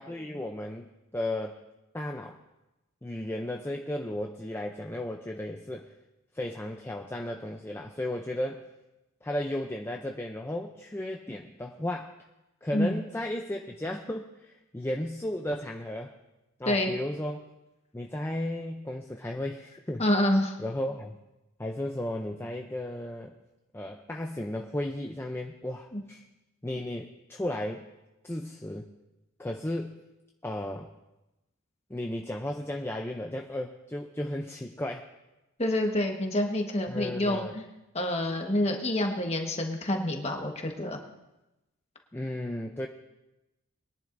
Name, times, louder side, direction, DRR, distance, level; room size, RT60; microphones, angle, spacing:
voice 1, 0.0-1.6 1.9-2.4 3.0-5.9 6.3-8.6 9.2-12.1 12.6-16.1 16.6-17.5 17.9-20.0 20.6-21.2 21.6-23.3 23.7-26.2 26.6-27.9 28.2-28.9 29.4-30.0 30.4-30.9 31.9-35.1 36.9-37.5 42.1-42.9, left 1 dB, 10° left, 2 dB, 0.5 m, -34 dB
voice 2, 20.0-20.6 25.9-26.0 35.6-37.7 37.9-41.0, left 1 dB, 30° left, 3 dB, 1.3 m, -27 dB
22.0 x 10.5 x 2.6 m, 0.98 s
head